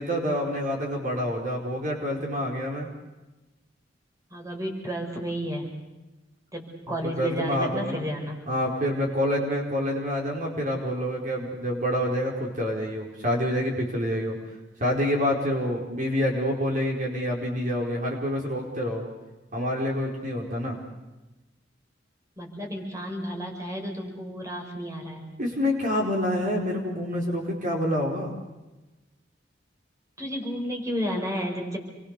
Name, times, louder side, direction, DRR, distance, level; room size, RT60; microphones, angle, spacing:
voice 1, 0.0-2.9 7.2-8.0 8.5-14.3 14.8-19.0 19.5-20.8 25.4-28.4, equal, 45° right, 0 dB, 4.7 m, -27 dB
voice 2, 4.3-5.7 6.5-8.4 22.4-25.3 30.2-31.8, equal, 20° right, 2 dB, 5.3 m, -32 dB
28.5 x 23.0 x 6.7 m, 1.1 s
head